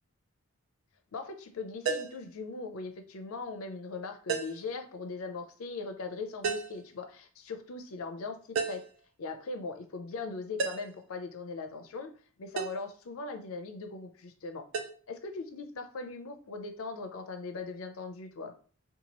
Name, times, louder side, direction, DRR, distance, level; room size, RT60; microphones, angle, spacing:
voice 1, 1.1-8.8 9.2-12.1 12.4-14.6 15.1-18.5, left 4 dB, 70° left, 6 dB, 0.5 m, -40 dB
sound 1, 1.9-2.2 4.3-4.7 6.4-6.8 8.6-9.0 10.6-11.0 12.6-12.8 14.7-14.9, right 5 dB, 55° right, 0.4 m, -33 dB
2.8 x 2.3 x 2.9 m, 0.42 s
head